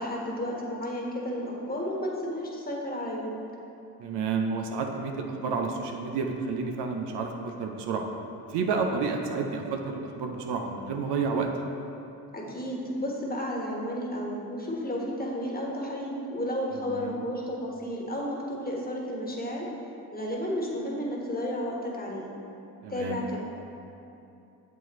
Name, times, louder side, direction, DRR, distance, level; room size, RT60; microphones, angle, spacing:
voice 1, 0.0-3.3 12.3-19.7 20.1-22.3 22.9-23.4, equal, 20° left, -3 dB, 1.4 m, -32 dB
voice 2, 4.0-8.1 8.5-11.5 16.9-17.2 22.8-23.2, right 5 dB, 70° right, 3 dB, 0.7 m, -30 dB
7.3 x 4.5 x 3.1 m, 2.7 s
hypercardioid pair, 50°, 43 cm